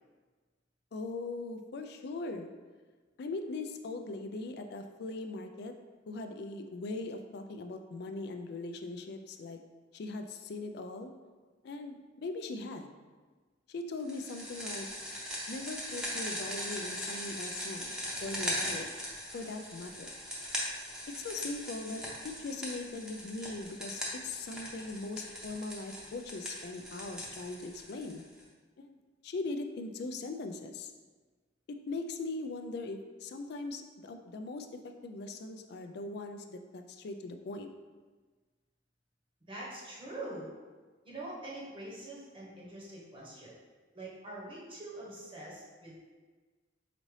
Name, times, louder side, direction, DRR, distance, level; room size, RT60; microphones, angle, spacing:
voice 1, 0.9-2.5 3.2-5.7 6.1-9.6 9.9-11.1 11.6-12.9 13.7-14.9 15.5-17.9 18.2-18.9 19.3-20.1 21.2-22.0 22.4-28.2 28.8-29.0 29.2-30.9 31.9-37.7, left 3 dB, 60° left, 7 dB, 0.3 m, -40 dB
sound 1, 14.1-28.4, equal, 5° right, 0.7 m, -40 dB
voice 2, 39.5-40.5 41.0-43.5 43.9-46.1, right 2 dB, 30° right, -6 dB, 0.9 m, -44 dB
5.0 x 2.7 x 3.1 m, 1.4 s
head